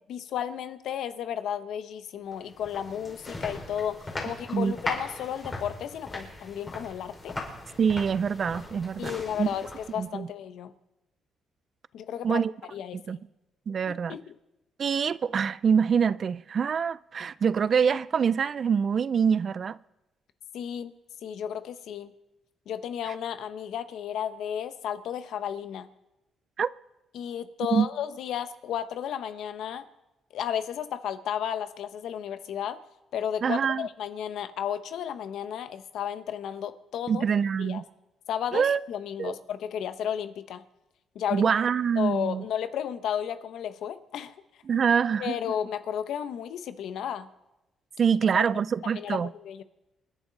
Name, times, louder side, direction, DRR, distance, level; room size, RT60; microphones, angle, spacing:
voice 1, 0.1-7.4 9.0-10.7 11.9-12.4 12.7-13.0 13.9-14.3 20.5-20.9 21.2-22.1 22.7-25.9 27.1-29.8 30.3-32.8 33.1-37.3 37.6-37.8 38.3-40.6 41.1-41.4 42.0-44.3 45.2-47.3 48.3-48.4 48.8-49.6, left 9 dB, 75° left, 1.0 m, -33 dB
sound 1, 2.3-10.1, left 2 dB, 30° left, 5.1 m, -39 dB
voice 2, 7.8-9.5 10.0-10.3 12.2-12.5 12.9-13.2 13.7-14.2 14.8-19.8 26.6-26.7 27.7-27.9 33.4-33.9 37.1-37.8 38.5-38.8 39.2-39.4 41.3-42.4 44.7-45.4 48.0-49.3, right 7 dB, 50° right, 0.4 m, -25 dB
27.5 x 10.5 x 4.1 m
cardioid pair, 90°, 0 cm